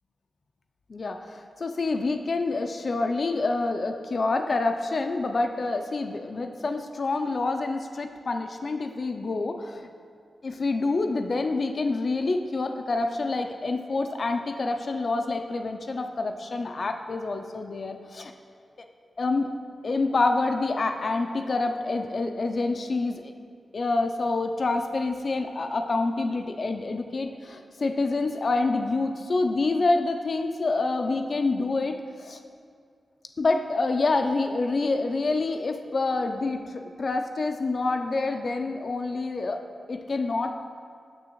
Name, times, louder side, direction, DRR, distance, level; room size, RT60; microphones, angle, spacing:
voice 1, 0.9-9.9 10.4-18.3 19.2-19.5 19.8-23.3 23.7-32.4 33.4-39.6 39.9-40.5, left 3 dB, 50° left, 5 dB, 0.3 m, -27 dB
6.2 x 6.1 x 2.9 m, 2.2 s
wide cardioid pair, 80°, 0 cm